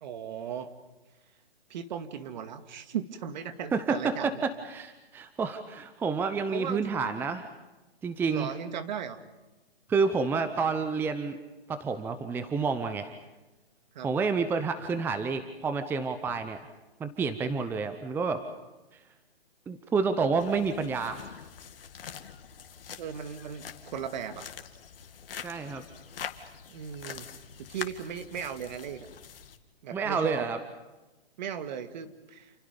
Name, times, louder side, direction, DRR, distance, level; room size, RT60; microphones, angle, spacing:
voice 1, 0.0-0.7 1.7-4.3 6.5-7.0 8.3-9.2 13.9-14.1 23.0-24.5 26.7-27.3 27.7-29.1 29.8-30.5 31.4-32.5, right 8 dB, 45° right, 9 dB, 2.3 m, -37 dB
voice 2, 3.7-7.5 8.0-8.5 9.9-11.4 11.7-13.1 14.0-16.6 17.0-18.4 19.7-21.4 25.4-25.8 29.9-30.6, right 4 dB, 5° right, 9 dB, 0.8 m, -29 dB
sound 1, 20.3-29.6, left 7 dB, 65° left, 2.3 m, -44 dB
29.5 x 28.0 x 5.3 m, 1.1 s
hypercardioid pair, 145°, 31 cm